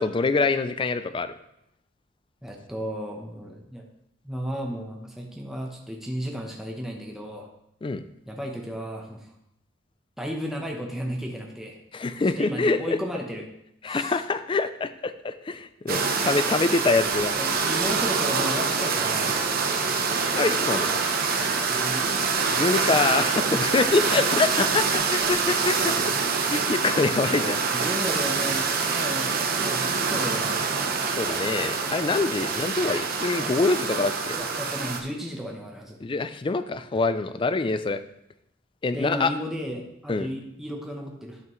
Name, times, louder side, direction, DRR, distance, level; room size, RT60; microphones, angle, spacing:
voice 1, 0.0-1.3 7.8-8.0 11.9-13.0 13.8-17.4 20.3-21.1 22.5-25.9 26.5-27.6 31.1-34.4 36.0-38.0 38.8-39.3 40.1-40.3, left 3 dB, 25° left, 12 dB, 0.4 m, -25 dB
voice 2, 2.4-3.8 4.2-7.5 8.3-9.3 10.2-11.8 12.4-13.5 13.8-14.1 17.4-19.4 21.7-22.3 27.7-30.7 34.0-34.1 34.3-36.0 38.9-41.4, equal, ahead, 0 dB, 0.8 m, -34 dB
sound 1, 15.9-35.0, right 5 dB, 50° right, 0.8 m, -25 dB
10.5 x 5.8 x 3.1 m, 0.79 s
head